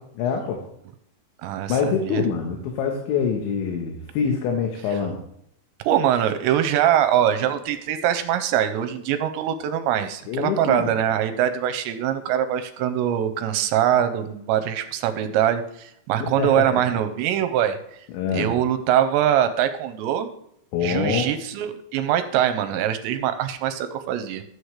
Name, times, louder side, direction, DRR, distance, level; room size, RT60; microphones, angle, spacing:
voice 1, 0.2-0.6 1.7-5.2 10.3-10.9 16.2-16.8 18.1-18.5 20.7-21.3, left 6 dB, 80° left, 2 dB, 3.4 m, -25 dB
voice 2, 1.4-2.2 5.9-17.8 18.3-20.3 20.8-24.4, right 10 dB, 85° right, 9 dB, 2.8 m, -23 dB
13.0 x 8.0 x 3.2 m, 0.72 s
omnidirectional pair, 5.3 m